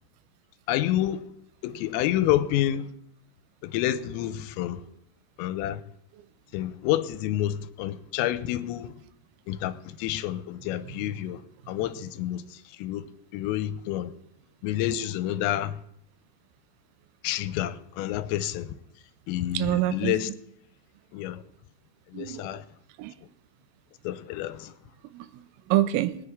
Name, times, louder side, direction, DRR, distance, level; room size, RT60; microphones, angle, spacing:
voice 1, 0.7-1.3 1.6-2.9 3.6-4.8 5.4-5.8 6.5-8.9 9.5-11.4 11.7-13.1 13.3-14.1 14.6-15.8 17.2-18.7 19.3-20.3 21.1-21.4 22.1-22.6 24.0-24.7, left 13 dB, 90° left, 3.3 m, -29 dB
voice 2, 10.8-11.3 19.6-20.2 22.1-22.6 23.0-23.1 25.1-26.2, right 14 dB, 90° right, 3.4 m, -27 dB
21.0 x 9.9 x 3.6 m
omnidirectional pair, 5.9 m